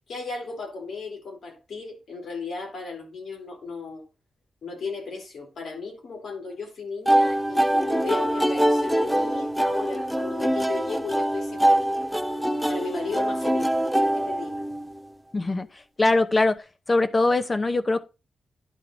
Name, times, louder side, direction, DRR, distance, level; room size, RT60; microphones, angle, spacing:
voice 1, 0.1-4.0 4.6-12.0 12.7-14.5, left 4 dB, 70° left, 3.3 m, -35 dB
sound 1, 7.1-15.0, right 1 dB, ahead, 0.5 m, -24 dB
voice 2, 15.3-15.7 16.0-16.6 16.9-18.0, left 2 dB, 30° left, 0.8 m, -21 dB
11.0 x 3.8 x 4.5 m
cardioid pair, 95°, 0 cm